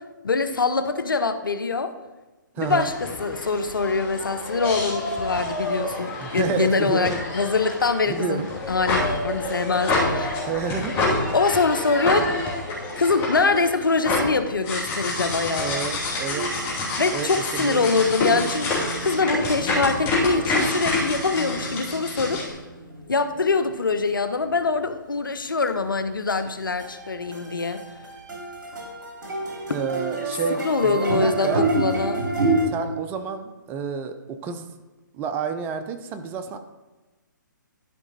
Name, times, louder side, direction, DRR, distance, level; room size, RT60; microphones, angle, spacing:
voice 1, 0.2-1.9 2.6-10.5 11.3-12.3 13.0-15.9 17.0-22.4 23.1-27.8 30.6-32.2, left 4 dB, 85° left, 10 dB, 0.8 m, -24 dB
voice 2, 2.5-2.9 6.2-7.2 8.1-8.5 10.5-11.0 15.6-16.5 17.1-17.9 29.7-31.7 32.6-34.7 35.1-36.6, right 6 dB, 20° right, 8 dB, 0.5 m, -30 dB
sound 1, 2.6-22.5, left 2 dB, 20° left, 2.7 m, -27 dB
sound 2, 16.3-24.0 24.5-24.6 24.9-25.0 25.2-25.3 25.7-26.0 26.3-32.7, right 2 dB, 60° right, 2.7 m, -30 dB
12.0 x 5.0 x 4.1 m, 1.2 s
figure-of-eight pair, 135°, 11 cm